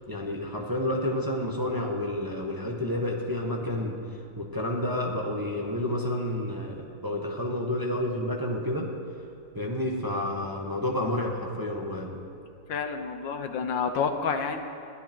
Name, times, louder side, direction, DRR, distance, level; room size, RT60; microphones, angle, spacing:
voice 1, 0.1-8.9 9.5-12.1, left 1 dB, 10° right, -1 dB, 1.4 m, -30 dB
voice 2, 12.7-14.6, left 5 dB, 70° left, 6 dB, 1.7 m, -29 dB
21.5 x 14.5 x 4.6 m, 2.8 s
omnidirectional pair, 2.1 m